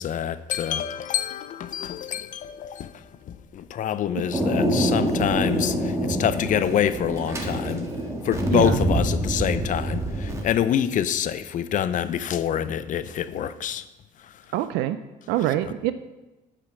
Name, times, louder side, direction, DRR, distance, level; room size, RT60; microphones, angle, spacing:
voice 1, 0.0-7.9 8.2-13.8 14.2-14.3, left 9 dB, 50° left, 13 dB, 0.5 m, -26 dB
Thunder, 4.3-10.4, right 1 dB, 15° right, 1.4 m, -26 dB
voice 2, 8.5-8.8 14.5-15.0 15.3-15.9, right 13 dB, 85° right, 12 dB, 0.4 m, -25 dB
8.7 x 5.1 x 6.0 m, 1.1 s
cardioid pair, 110°, 17 cm